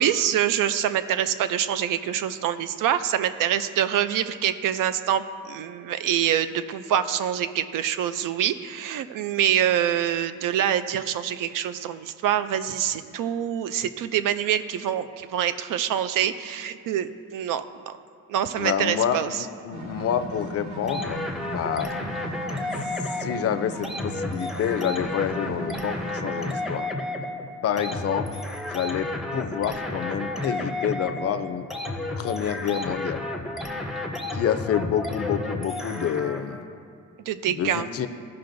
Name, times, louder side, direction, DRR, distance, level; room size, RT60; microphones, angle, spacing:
voice 1, 0.0-17.9 18.3-19.3 37.3-37.9, right 10 dB, 80° right, 12 dB, 0.5 m, -25 dB
voice 2, 18.6-21.2 21.5-21.9 23.2-26.9 27.6-28.3 28.7-31.7 32.2-33.2 34.3-36.7 37.5-38.1, left 9 dB, 50° left, 10 dB, 0.4 m, -28 dB
sound 1, 19.7-26.6, right 3 dB, 65° right, 1.0 m, -38 dB
sound 2, 20.9-36.6, left 2 dB, ahead, 0.5 m, -32 dB
16.0 x 5.6 x 2.6 m, 2.3 s
cardioid pair, 155°, 32 cm